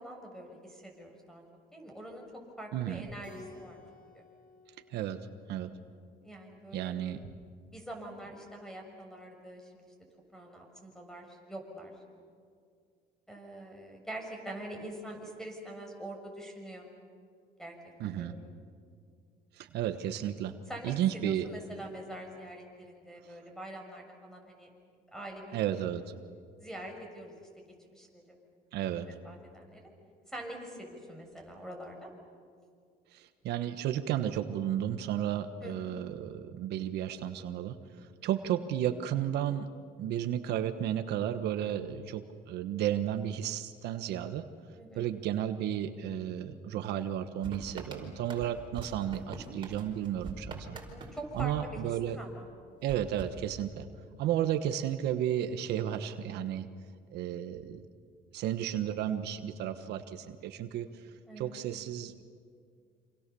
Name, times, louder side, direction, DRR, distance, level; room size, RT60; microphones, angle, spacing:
voice 1, 0.0-1.4 1.7-2.2 2.6-3.8 4.1-4.2 6.2-6.9 7.7-9.9 10.3-11.9 13.3-16.9 17.6-17.8 18.0-18.5 20.7-24.7 25.1-25.8 26.6-27.6 27.9-28.4 29.2-29.8 30.3-32.1 35.6-35.9 44.8-45.1 50.7-51.8 52.1-52.5 61.3-61.5, right 1 dB, 5° left, 2 dB, 6.4 m, -44 dB
voice 2, 2.7-3.1 4.9-5.2 5.5-5.7 6.7-7.2 18.0-18.4 19.5-20.5 20.8-21.5 25.5-26.0 28.7-29.1 33.1-39.7 40.0-44.4 45.0-50.8 51.3-52.2 52.8-53.9 54.2-56.7 57.1-57.9 58.3-61.1 61.4-62.2, right 10 dB, 80° right, 9 dB, 1.3 m, -33 dB
Keyboard (musical), 3.2-5.9, left 3 dB, 55° left, 7.6 m, -54 dB
sound 1, 47.4-52.3 52.9-54.1, right 3 dB, 30° right, 5.0 m, -45 dB
27.5 x 27.0 x 7.0 m, 2.2 s
cardioid pair, 110°, 17 cm